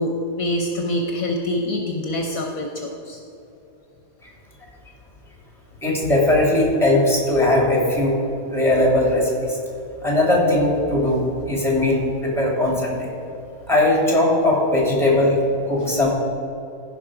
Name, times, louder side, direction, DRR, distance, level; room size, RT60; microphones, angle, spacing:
voice 1, 0.0-3.2 15.8-15.9, left 1 dB, 60° left, 2 dB, 1.3 m, -25 dB
voice 2, 5.8-8.2 8.5-9.6 10.0-11.2 11.5-13.1 13.7-15.4 15.7-16.1, left 1 dB, ahead, -2 dB, 2.3 m, -19 dB
15.0 x 5.8 x 4.8 m, 2.8 s
omnidirectional pair, 1.7 m